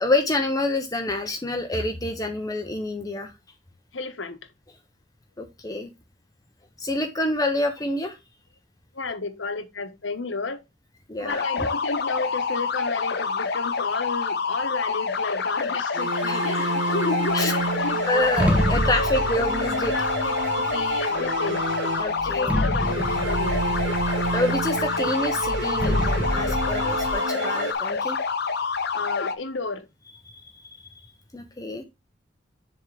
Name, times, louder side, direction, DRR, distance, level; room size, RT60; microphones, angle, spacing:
voice 1, 0.0-3.3 5.4-5.9 6.8-8.2 11.1-11.4 16.3-16.7 17.1-17.5 18.1-19.9 22.0-22.5 24.3-28.2 30.3-30.9 31.3-31.8, left 2 dB, 20° left, 0.7 m, -27 dB
voice 2, 3.9-4.4 8.9-10.6 11.2-18.0 18.7-19.1 19.9-21.6 22.2-23.8 28.9-29.8, left 3 dB, 75° left, 1.2 m, -32 dB
sound 1, 11.3-29.4, left 5 dB, 60° left, 0.8 m, -27 dB
sound 2, 15.9-22.4 22.8-27.7, right 4 dB, 75° right, 1.0 m, -30 dB
sound 3, 18.2-21.0 21.8-21.9 22.2-27.1, equal, 5° right, 0.9 m, -28 dB
7.4 x 3.6 x 4.7 m
head